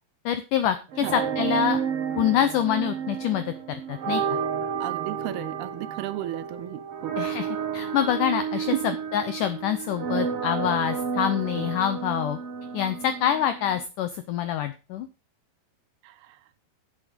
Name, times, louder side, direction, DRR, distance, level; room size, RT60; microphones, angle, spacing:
voice 1, 0.3-1.8 2.2-4.2 7.2-7.5 7.7-12.4 12.7-15.1, left 10 dB, 80° left, 10 dB, 1.8 m, -26 dB
sound 1, 0.9-13.8, right 7 dB, 55° right, 1.7 m, -31 dB
voice 2, 4.8-7.2 8.7-8.8 11.5-11.7 16.0-16.4, right 14 dB, 80° right, 15 dB, 2.6 m, -33 dB
11.0 x 7.6 x 5.1 m, 0.32 s
omnidirectional pair, 4.7 m